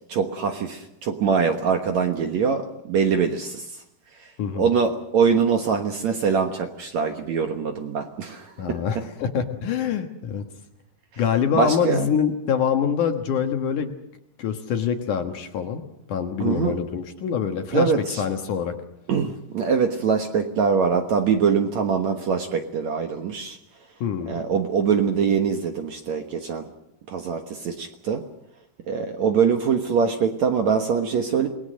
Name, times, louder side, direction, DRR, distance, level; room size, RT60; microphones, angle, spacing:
voice 1, 0.0-3.6 4.5-8.8 11.1-11.2 11.5-12.1 16.4-16.7 17.7-18.2 19.1-23.6 24.3-26.7 27.1-28.2 28.9-31.5, right 6 dB, 60° right, 5 dB, 2.1 m, -23 dB
voice 2, 4.4-4.7 8.6-10.4 11.2-13.9 14.4-15.8 16.1-17.9 18.2-18.8 24.0-24.4, left 7 dB, 60° left, 6 dB, 2.5 m, -25 dB
27.5 x 20.0 x 6.5 m, 0.80 s
omnidirectional pair, 4.6 m